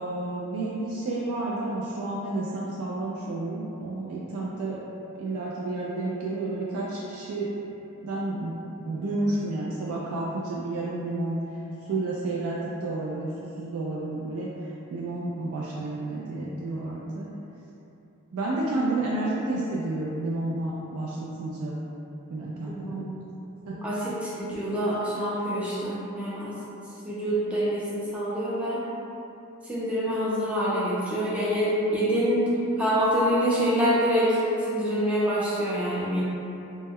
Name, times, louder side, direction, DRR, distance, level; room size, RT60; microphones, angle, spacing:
voice 1, 0.0-4.8 5.2-7.7 8.0-8.6 8.9-11.4 11.9-17.3 18.3-21.8 22.3-23.0 23.7-23.8, right 2 dB, 80° right, -6 dB, 0.3 m, -31 dB
voice 2, 23.8-26.6 27.0-28.8 29.6-32.4 32.8-36.2, equal, 5° right, -8 dB, 0.4 m, -26 dB
2.1 x 2.1 x 3.4 m, 2.9 s
head